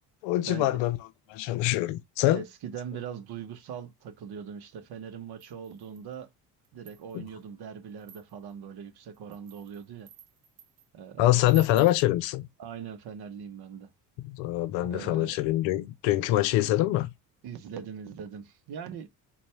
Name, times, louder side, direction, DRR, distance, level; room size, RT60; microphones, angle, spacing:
voice 1, 0.2-1.0 1.3-2.4 7.1-7.2 11.2-12.5 14.2-17.1, left 15 dB, 65° left, 0.6 m, -25 dB
voice 2, 2.3-6.3 6.7-10.1 10.9-11.4 12.6-13.9 14.8-15.4 17.4-19.1, right 7 dB, 50° right, 0.8 m, -41 dB
sound 1, 5.4-6.1 6.6-7.3 8.0-8.5 9.1-10.9 11.5-12.1, right 10 dB, 85° right, 0.7 m, -51 dB
3.9 x 2.3 x 3.3 m
hypercardioid pair, 60°, 48 cm